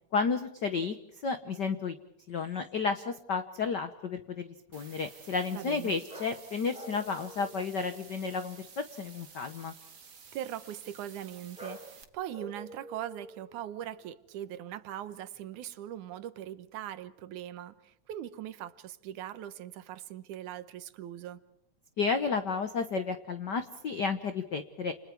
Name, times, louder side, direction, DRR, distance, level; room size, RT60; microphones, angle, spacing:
voice 1, 0.1-1.0 1.2-2.0 2.3-9.7 22.0-24.9, left 5 dB, 75° left, 1.0 m, -32 dB
sound 1, 2.3-3.4 6.1-8.0 8.2-8.9 11.6-12.0 12.3-14.6 14.9-15.4, equal, ahead, 4.8 m, -50 dB
sound 2, 4.7-12.0, right 6 dB, 40° right, 2.2 m, -53 dB
voice 2, 5.5-5.9 10.3-21.4, right 11 dB, 80° right, 2.5 m, -41 dB
29.0 x 29.0 x 4.7 m
omnidirectional pair, 3.5 m